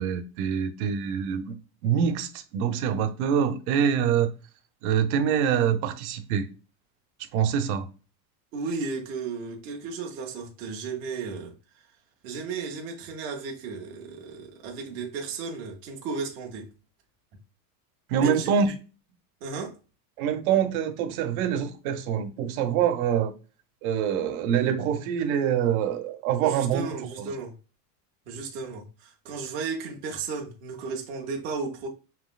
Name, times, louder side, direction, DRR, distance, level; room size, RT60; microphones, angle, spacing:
voice 1, 0.0-1.5 1.8-4.3 4.8-6.5 7.3-7.9 18.1-18.7 20.2-23.3 23.8-26.9 27.2-27.3, right 8 dB, 60° right, 0.8 m, -25 dB
voice 2, 8.5-11.5 12.2-16.7 18.2-18.7 19.4-19.8 26.4-27.6 28.3-31.9, right 4 dB, 20° right, 0.3 m, -34 dB
5.1 x 3.0 x 2.3 m
supercardioid pair, 165°, 49 cm